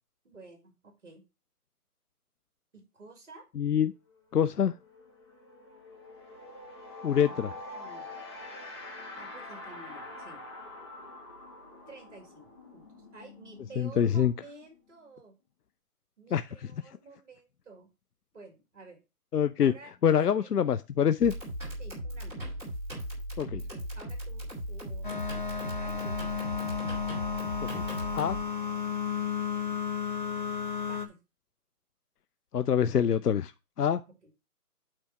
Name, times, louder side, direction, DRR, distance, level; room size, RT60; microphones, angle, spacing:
voice 1, 0.2-1.2 2.7-3.4 7.2-8.1 9.1-10.4 11.9-15.3 16.2-17.9 18.3-19.0 19.6-20.5 21.8-22.4 23.7-26.4 30.8-31.2, right 3 dB, 50° right, 2.2 m, -51 dB
voice 2, 3.6-3.9 4.3-4.7 7.0-7.5 13.8-14.3 16.3-16.5 19.3-19.7 20.0-21.3 23.4-23.6 27.7-27.8 28.1-28.4 32.5-33.5 33.8-34.0, left 8 dB, 80° left, 0.6 m, -25 dB
sound 1, 4.1-4.3 4.5-15.1, left 2 dB, 15° left, 1.2 m, -46 dB
sound 2, 21.2-28.4, equal, 5° right, 2.3 m, -37 dB
sound 3, 25.0-31.1, left 7 dB, 35° left, 0.8 m, -33 dB
8.8 x 3.4 x 6.0 m
figure-of-eight pair, 165°, 46 cm